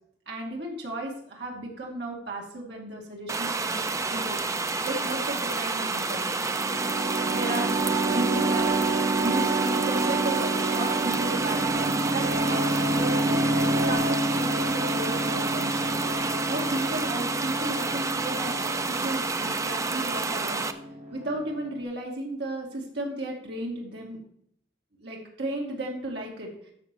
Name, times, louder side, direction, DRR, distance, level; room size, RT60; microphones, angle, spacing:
voice 1, 0.3-4.4 4.8-6.2 7.3-8.8 9.2-13.6 13.9-16.0 16.5-20.7 21.1-24.2 25.0-26.5, right 1 dB, 65° right, -1 dB, 2.4 m, -34 dB
sound 1, 3.3-20.7, right 3 dB, 15° right, 0.4 m, -29 dB
sound 2, 6.4-21.8, right 2 dB, 40° right, 1.4 m, -29 dB
13.5 x 6.1 x 3.0 m, 0.67 s
head